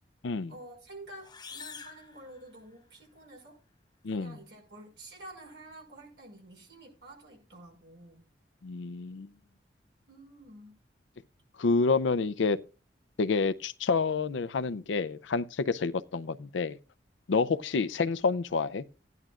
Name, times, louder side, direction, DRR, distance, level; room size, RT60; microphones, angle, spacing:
voice 1, 0.5-3.6 4.1-8.3 10.1-10.8 17.3-17.5, right 1 dB, 75° right, 5.7 m, -49 dB
sound 1, 1.2-3.0, left 6 dB, 25° left, 0.9 m, -47 dB
voice 2, 4.0-4.4 8.6-9.3 11.6-12.6 13.2-16.8 17.3-18.8, left 4 dB, 90° left, 0.5 m, -28 dB
16.0 x 11.0 x 2.4 m
head